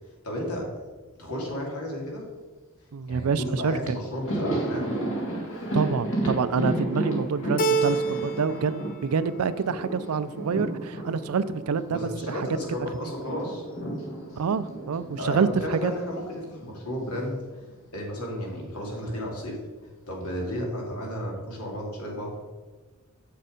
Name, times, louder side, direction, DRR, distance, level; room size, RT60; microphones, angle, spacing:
voice 1, 0.2-0.7 1.2-2.2 3.1-5.1 11.9-13.6 15.2-17.4 17.9-19.6 20.1-22.4, equal, 80° left, -1 dB, 2.5 m, -33 dB
voice 2, 2.9-4.0 5.7-12.5 13.0-13.1 14.4-15.9, right 5 dB, 80° right, 15 dB, 0.4 m, -27 dB
Thunder, 3.8-12.7 12.9-17.2 17.5-17.7 18.8-19.5, right 1 dB, 60° left, 2.0 m, -33 dB
Keyboard (musical), 7.6-8.7 9.0-9.7, right 4 dB, 40° left, 0.5 m, -27 dB
7.3 x 6.7 x 5.0 m, 1.3 s
head